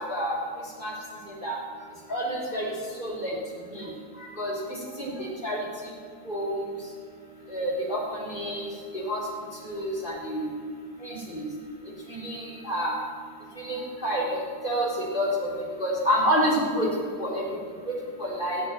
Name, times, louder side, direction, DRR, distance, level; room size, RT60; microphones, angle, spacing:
voice 1, 1.3-1.6 2.1-2.7 3.0-3.4 3.7-3.8 4.2-4.5 5.0-5.6 6.3-6.5 7.5-8.7 8.9-9.2 9.7-10.5 11.0-11.5 12.1-13.0 13.6-15.5 15.8-16.9 17.2-17.4 18.2-18.6, equal, 15° left, -4 dB, 3.9 m, -28 dB
16.5 x 8.5 x 9.2 m, 2.1 s
omnidirectional pair, 3.5 m